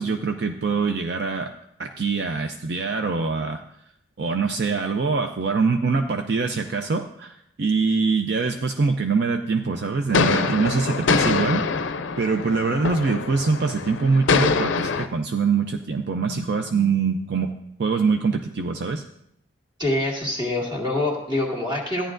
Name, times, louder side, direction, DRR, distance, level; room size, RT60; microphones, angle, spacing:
voice 1, 0.0-1.5 1.8-3.6 4.2-11.9 12.2-17.5 17.8-19.0, right 4 dB, 55° right, 6 dB, 0.5 m, -24 dB
sound 1, 10.1-15.1, left 4 dB, 70° left, 0.5 m, -24 dB
voice 2, 19.8-22.1, left 1 dB, 20° right, -2 dB, 2.0 m, -25 dB
14.0 x 10.0 x 2.6 m, 0.73 s
head